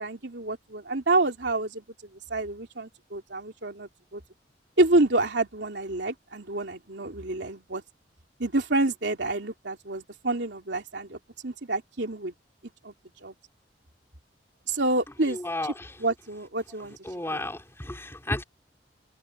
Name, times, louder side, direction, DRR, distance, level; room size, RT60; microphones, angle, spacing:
voice 1, 0.0-1.8 2.3-4.2 4.8-7.8 8.4-12.3 12.8-12.9 13.2-13.3 14.7-15.4 16.0-17.0 17.3-17.4, right 2 dB, 80° right, 3.1 m, -28 dB
voice 2, 15.3-15.9 17.0-18.4, left 1 dB, 15° left, 4.0 m, -33 dB
open air
head